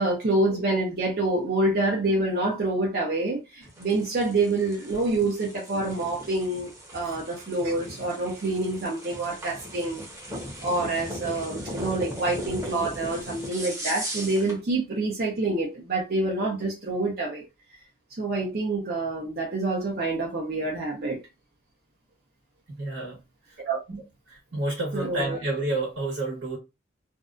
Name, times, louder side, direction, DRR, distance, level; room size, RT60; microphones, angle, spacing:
voice 1, 0.0-10.0 10.6-17.4 18.2-21.2 23.7-23.8 24.9-25.4, right 2 dB, 50° right, 0.7 m, -27 dB
sound 1, 3.6-14.6, equal, 15° right, 0.8 m, -38 dB
voice 2, 22.7-23.2 23.9-24.0 24.3-26.6, right 2 dB, 90° right, 1.1 m, -30 dB
2.6 x 2.2 x 2.4 m
head